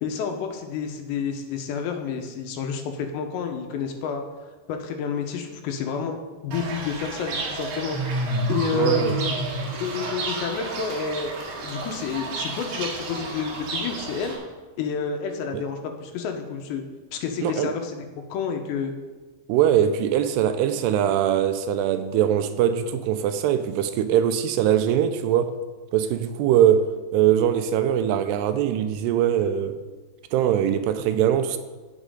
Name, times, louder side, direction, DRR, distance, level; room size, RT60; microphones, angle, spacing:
voice 1, 0.0-4.2 4.7-6.2 6.4-8.0 8.5-9.4 9.7-11.3 11.6-14.4 14.8-16.8 17.1-18.9, left 6 dB, 90° left, 3.2 m, -30 dB
Fowl / Bird, 6.5-14.4, right 2 dB, 65° right, 3.3 m, -30 dB
voice 2, 8.7-9.2 15.5-15.6 17.4-17.7 19.5-25.5 25.9-29.8 30.3-31.6, right 10 dB, 80° right, 2.6 m, -22 dB
16.5 x 6.3 x 3.8 m
omnidirectional pair, 4.9 m